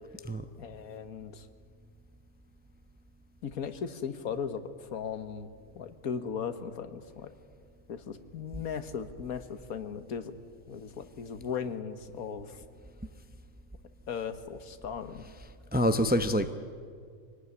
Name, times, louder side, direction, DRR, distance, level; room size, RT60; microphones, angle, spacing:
voice 1, 0.6-1.5 3.4-5.5 5.7-7.3 7.9-10.4 10.7-12.6 14.1-15.2, left 7 dB, 85° left, 11 dB, 1.7 m, -37 dB
voice 2, 15.7-16.5, equal, 10° right, 9 dB, 0.6 m, -26 dB
24.5 x 18.5 x 9.7 m, 2.1 s
omnidirectional pair, 1.5 m